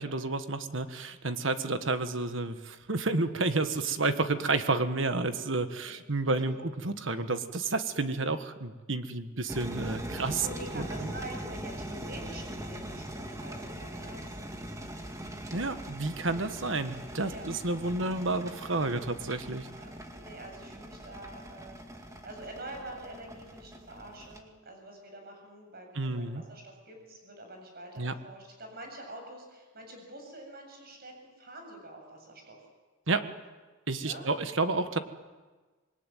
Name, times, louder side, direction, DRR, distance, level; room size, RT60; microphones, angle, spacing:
voice 1, 0.0-10.4 10.7-11.1 15.5-19.7 25.9-26.4 28.0-28.1 33.1-33.3 33.9-35.0, right 3 dB, 65° right, 9 dB, 1.5 m, -30 dB
voice 2, 6.2-6.6 10.4-14.9 17.2-17.5 19.8-32.6 34.0-34.3, right 1 dB, 50° right, 3 dB, 7.7 m, -46 dB
sound 1, 9.5-24.4, right 1 dB, 15° right, 2.1 m, -41 dB
26.5 x 21.0 x 9.3 m, 1.3 s
head